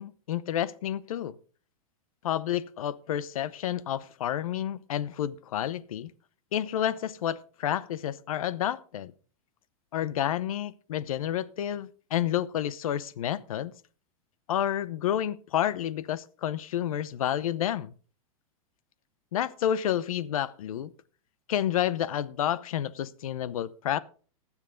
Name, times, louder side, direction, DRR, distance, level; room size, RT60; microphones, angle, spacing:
voice 1, 0.0-1.4 2.2-6.1 6.5-9.1 9.9-13.7 14.5-17.9 19.3-20.9 21.5-24.0, left 11 dB, 70° left, 0.8 m, -30 dB
19.5 x 7.3 x 3.8 m
supercardioid pair, 170°, 18 cm